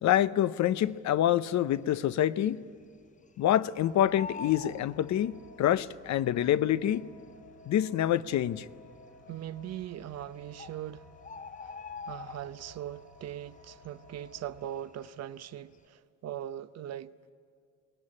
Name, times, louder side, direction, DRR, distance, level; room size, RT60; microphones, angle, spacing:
voice 1, 0.0-2.6 3.4-7.1 7.7-8.7, left 11 dB, 65° left, 0.7 m, -26 dB
Bird, 1.2-1.8 2.1-2.2 2.5-3.7 3.9-5.8 6.6-6.7 7.3-7.4 7.6-7.7 8.4-8.8 9.8-9.9 10.3-10.4 10.6-12.9 13.2-13.5 13.8-15.2 15.6-15.8, left 4 dB, 25° left, 0.6 m, -44 dB
sound 1, 3.7-14.8, left 2 dB, 85° left, 3.3 m, -55 dB
voice 2, 9.3-11.1 11.6-11.7 12.1-17.1, right 11 dB, 55° right, 0.7 m, -40 dB
23.5 x 19.0 x 9.8 m
cardioid pair, 90°, 30 cm